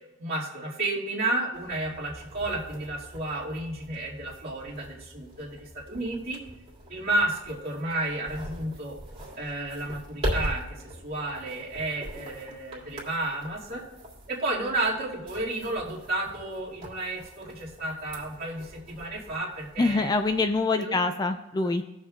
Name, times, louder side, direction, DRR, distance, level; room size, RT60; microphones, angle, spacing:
voice 1, 0.2-6.4 6.9-9.0 9.3-13.8 14.3-20.1 20.8-20.9 21.6-21.7, right 2 dB, 45° right, -5 dB, 2.3 m, -32 dB
sound 1, 1.5-20.6, equal, 30° right, 2.6 m, -41 dB
voice 2, 19.8-21.8, left 3 dB, 20° left, 8 dB, 0.3 m, -25 dB
17.5 x 6.6 x 2.4 m, 0.94 s
head